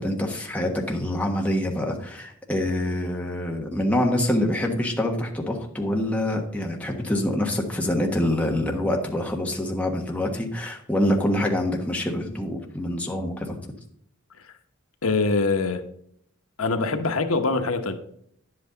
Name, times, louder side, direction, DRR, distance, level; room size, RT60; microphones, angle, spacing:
voice 1, 0.0-13.6, left 1 dB, 5° left, 0 dB, 1.3 m, -25 dB
voice 2, 15.0-15.8 16.6-17.9, left 3 dB, 90° left, 7 dB, 1.0 m, -23 dB
10.5 x 8.0 x 3.9 m, 0.67 s
head